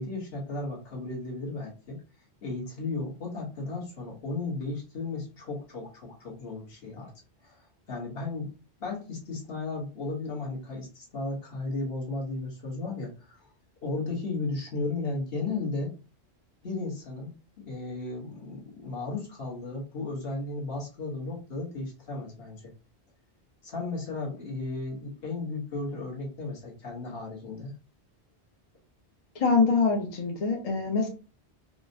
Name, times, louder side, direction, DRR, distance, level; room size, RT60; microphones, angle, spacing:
voice 1, 0.0-2.0 2.4-7.1 7.4-7.6 7.9-8.5 8.8-13.4 13.8-15.9 16.6-22.7 23.6-27.7, left 3 dB, 65° left, -2 dB, 1.4 m, -35 dB
voice 2, 29.3-31.1, left 4 dB, 40° left, 1 dB, 0.7 m, -24 dB
4.7 x 2.1 x 2.6 m, 0.33 s
omnidirectional pair, 1.1 m